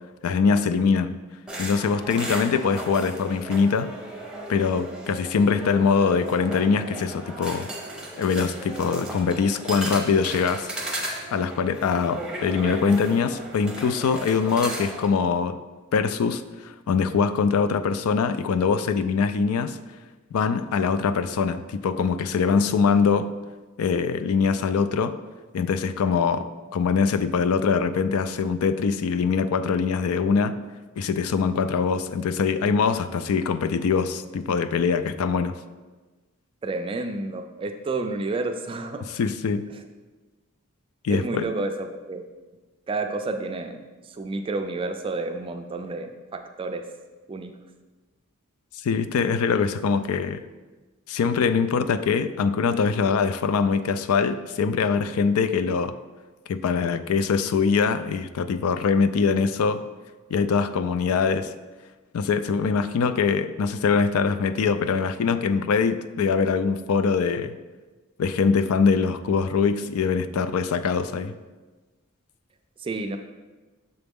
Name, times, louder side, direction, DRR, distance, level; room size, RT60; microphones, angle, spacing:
voice 1, 0.2-1.2 1.6-3.9 4.5-7.7 8.2-10.7 11.3-15.6 15.9-19.8 20.3-23.3 23.8-25.1 25.5-30.5 31.0-35.6 39.1-39.6 41.0-41.5 48.8-50.4 51.1-56.0 56.5-59.8 60.3-61.5 62.1-67.6 68.2-71.3, left 5 dB, 85° left, 12 dB, 0.4 m, -23 dB
sound 1, 1.5-15.1, right 1 dB, 5° right, 0.7 m, -36 dB
voice 2, 36.6-39.1 41.1-42.2 42.9-43.8 44.1-46.9 47.3-47.5 72.8-73.2, right 3 dB, 25° right, 6 dB, 0.3 m, -30 dB
6.7 x 4.0 x 3.6 m, 1.3 s
head